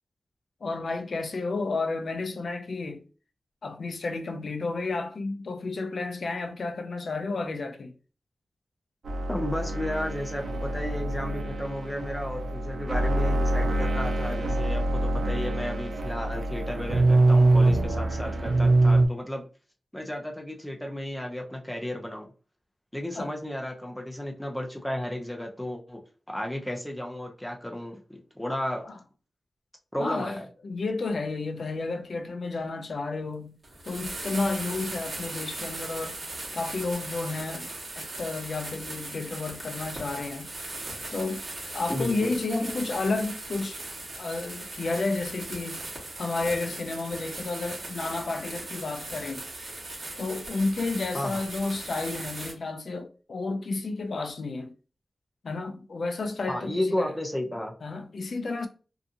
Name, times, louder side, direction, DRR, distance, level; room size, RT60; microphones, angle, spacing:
voice 1, 0.6-3.0 3.6-7.9 23.2-23.3 28.8-29.0 30.0-30.4 30.6-33.6 33.9-36.2 36.5-40.5 41.1-41.4 41.7-43.8 44.2-45.8 46.2-49.4 50.2-54.7 55.4-57.1 57.8-58.7, left 3 dB, 60° left, 0.4 m, -31 dB
sound 1, 9.1-19.1, right 2 dB, 80° right, 0.5 m, -24 dB
voice 2, 9.3-19.4 19.9-22.3 22.9-26.0 26.3-28.9 29.9-30.5 41.9-42.8 51.1-51.4 56.5-57.7, left 1 dB, 5° left, 0.5 m, -33 dB
sound 2, 33.6-52.5, right 2 dB, 45° right, 1.1 m, -38 dB
2.6 x 2.4 x 2.5 m
wide cardioid pair, 135°, 0 cm